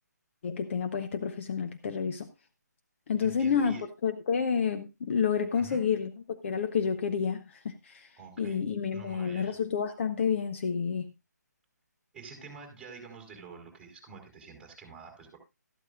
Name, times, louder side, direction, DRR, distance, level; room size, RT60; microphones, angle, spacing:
voice 1, 0.4-2.3 3.1-6.1 6.4-8.1 8.4-11.1, left 6 dB, 45° left, 0.9 m, -29 dB
voice 2, 3.2-3.8 5.5-5.8 8.2-8.6 8.9-9.6 12.1-15.4, right 5 dB, 5° right, 4.0 m, -47 dB
13.0 x 12.5 x 2.5 m
figure-of-eight pair, 145°, 10 cm